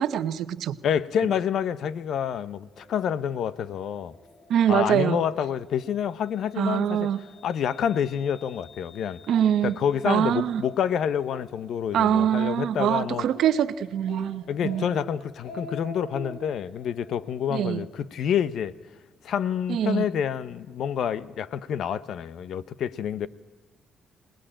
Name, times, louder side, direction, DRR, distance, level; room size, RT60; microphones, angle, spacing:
voice 1, 0.0-0.8 4.5-5.2 6.6-7.2 9.3-9.8 10.0-10.6 11.9-14.9 17.5-17.9 19.7-20.1, right 10 dB, 75° right, 0.9 m, -24 dB
voice 2, 0.8-4.1 4.7-7.1 7.4-9.2 9.6-13.3 14.5-18.7 19.2-23.3, left 8 dB, 70° left, 0.9 m, -28 dB
sound 1, 2.7-17.8, left 2 dB, 55° left, 7.9 m, -54 dB
Speech, 11.3-11.4 11.9-12.2 12.6-12.7 13.0-13.7 14.1-14.3 14.6-15.0 15.3-16.4, left 2 dB, 85° left, 5.8 m, -41 dB
25.5 x 19.0 x 9.0 m
cardioid pair, 90°, 0 cm